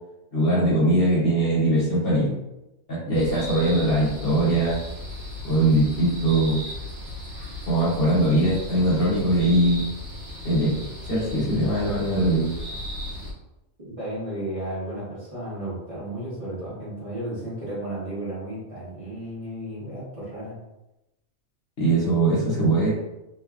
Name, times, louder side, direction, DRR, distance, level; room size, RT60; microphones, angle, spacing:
voice 1, 0.3-2.3 2.9-4.8 5.4-6.6 7.7-9.9 10.4-10.8 11.1-12.5 21.8-22.9, right 1 dB, 50° left, -8 dB, 1.0 m, -21 dB
sound 1, 3.1-13.3, left 1 dB, 75° right, 1.4 m, -36 dB
voice 2, 13.8-20.6, right 1 dB, 25° right, -11 dB, 1.1 m, -33 dB
3.0 x 2.2 x 2.4 m, 0.94 s
omnidirectional pair, 1.4 m